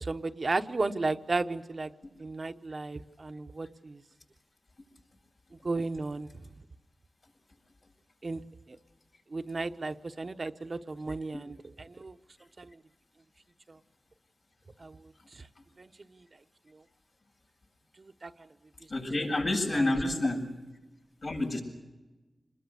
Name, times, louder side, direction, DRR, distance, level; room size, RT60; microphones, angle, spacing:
voice 1, 0.0-1.9 2.2-4.0 5.6-6.3 8.2-8.4 9.3-12.1 12.6-12.8 13.7-13.8 14.8-15.0 15.8-16.2 18.0-18.3 19.7-19.8, right 3 dB, 50° right, 8 dB, 1.0 m, -34 dB
voice 2, 18.9-20.4 21.2-21.6, left 2 dB, 70° left, 0 dB, 7.7 m, -29 dB
27.0 x 21.0 x 6.9 m, 1.1 s
cardioid pair, 55°, 0 cm